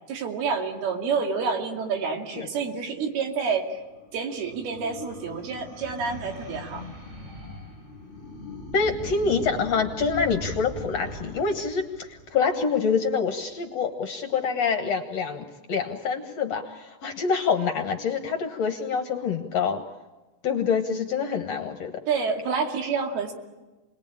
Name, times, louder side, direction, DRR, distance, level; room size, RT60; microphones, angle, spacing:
voice 1, 0.1-3.8 4.1-6.8 22.1-23.3, right 5 dB, 85° right, 3 dB, 4.4 m, -28 dB
sound 1, 3.4-13.0, left 1 dB, 15° right, 7.6 m, -40 dB
voice 2, 8.7-19.8 20.4-22.0, left 5 dB, 60° left, 5 dB, 1.9 m, -26 dB
29.5 x 21.0 x 8.8 m, 1.2 s
omnidirectional pair, 4.3 m